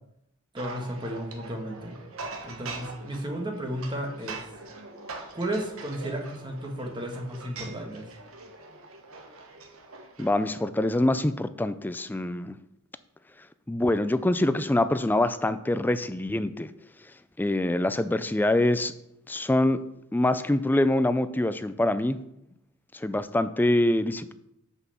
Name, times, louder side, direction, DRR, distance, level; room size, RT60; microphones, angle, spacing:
voice 1, 0.5-2.0 2.4-4.4 5.3-8.1, right 1 dB, 20° right, 3 dB, 1.5 m, -33 dB
sound 1, 0.6-10.6, right 3 dB, 75° right, 1.2 m, -43 dB
voice 2, 10.2-12.6 13.7-16.7 17.4-18.9 19.3-19.8 20.1-22.2 22.9-24.3, left 1 dB, 10° left, 13 dB, 0.3 m, -25 dB
6.1 x 5.5 x 7.0 m, 0.80 s
head